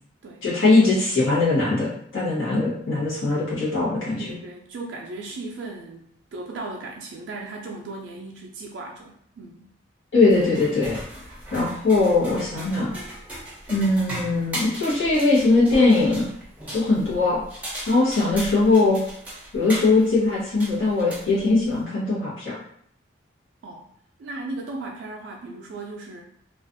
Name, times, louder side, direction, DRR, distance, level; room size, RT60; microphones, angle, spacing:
voice 1, 0.4-4.3 10.1-11.0 11.5-12.9 13.7-16.3 16.7-17.4 17.9-19.0 19.5-22.6, left 3 dB, 80° left, -8 dB, 1.0 m, -20 dB
voice 2, 4.2-6.0 6.3-9.7 23.6-23.8 24.2-26.2, right 2 dB, 70° right, 0 dB, 0.3 m, -36 dB
sound 1, 10.2-21.8, right 1 dB, 5° right, 0.5 m, -37 dB
2.3 x 2.3 x 2.5 m, 0.66 s
head